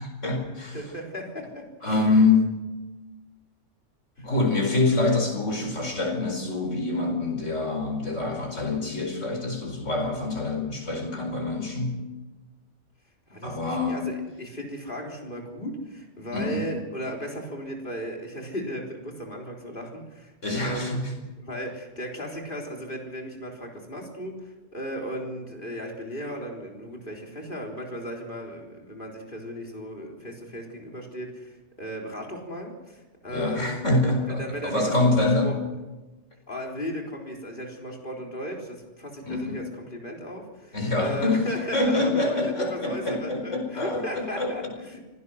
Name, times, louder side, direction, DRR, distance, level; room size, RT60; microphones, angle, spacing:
voice 1, 0.0-0.8 1.8-2.5 4.2-12.0 13.4-14.0 16.3-16.6 20.4-21.1 33.3-35.5 39.2-39.6 40.7-41.4 41.7-44.7, left 2 dB, 85° left, 3 dB, 5.1 m, -25 dB
voice 2, 0.7-2.1 4.2-4.3 13.3-21.0 21.4-33.8 34.0-34.9 35.4-35.6 36.5-45.0, equal, 45° left, 0 dB, 4.0 m, -36 dB
25.0 x 17.5 x 6.4 m, 1.1 s
omnidirectional pair, 1.2 m